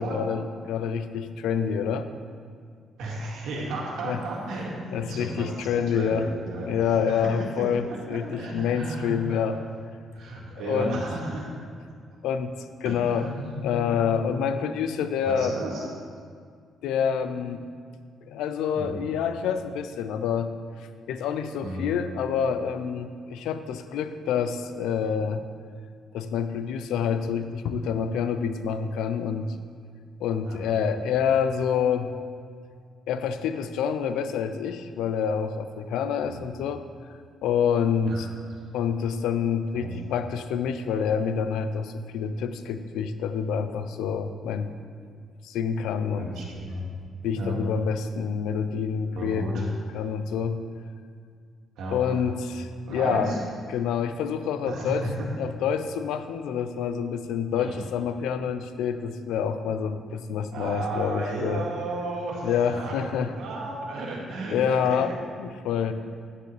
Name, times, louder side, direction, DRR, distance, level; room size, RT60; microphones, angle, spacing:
voice 1, 0.0-2.1 4.0-4.2 4.5-6.3 6.7-9.6 10.5-11.0 12.2-15.6 16.8-17.6 18.3-20.5 21.1-25.4 26.1-29.5 30.2-32.1 33.1-36.8 37.4-38.3 38.7-44.8 45.4-46.3 47.2-50.6 51.9-53.3 53.7-55.1 55.4-61.6 62.4-63.3 64.5-65.9, left 7 dB, 90° left, 10 dB, 0.5 m, -27 dB
voice 2, 3.0-7.3 7.9-9.7 10.1-11.4 12.8-13.4 13.8-14.1 15.2-15.9 18.8-18.9 21.6-21.9 30.4-30.9 36.2-36.3 38.0-38.2 39.7-39.9 46.2-46.8 47.4-47.6 49.1-49.6 51.8-52.2 52.9-53.4 54.7-55.3 57.6-57.7 60.5-65.0, right 2 dB, 80° right, -2 dB, 2.0 m, -34 dB
9.6 x 9.1 x 3.3 m, 2.1 s
cardioid pair, 90°, 0 cm